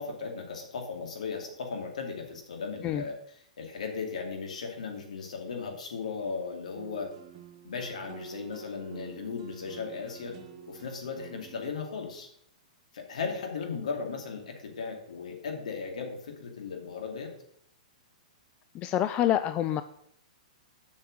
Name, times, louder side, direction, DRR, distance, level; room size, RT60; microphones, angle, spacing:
voice 1, 0.0-7.1 7.6-10.3 10.7-12.3 12.9-17.3, left 5 dB, 70° left, 2 dB, 2.7 m, -37 dB
sound 1, 6.8-11.7, right 9 dB, 45° right, 1.7 m, -48 dB
voice 2, 18.7-19.8, left 11 dB, 30° left, 11 dB, 0.5 m, -26 dB
7.8 x 6.3 x 7.8 m, 0.71 s
hypercardioid pair, 115°, 4 cm